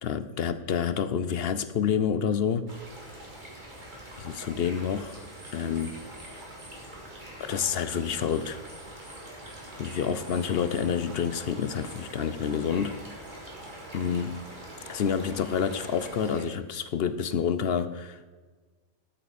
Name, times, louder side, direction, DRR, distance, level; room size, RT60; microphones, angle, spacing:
voice 1, 0.0-2.7 4.2-5.2 5.5-6.0 7.4-8.6 9.8-12.9 13.9-14.4 14.9-18.3, left 7 dB, 55° left, 12 dB, 0.7 m, -28 dB
sound 1, 2.7-16.4, right 1 dB, 35° right, 2.3 m, -44 dB
13.0 x 8.0 x 4.2 m, 1.4 s
omnidirectional pair, 1.5 m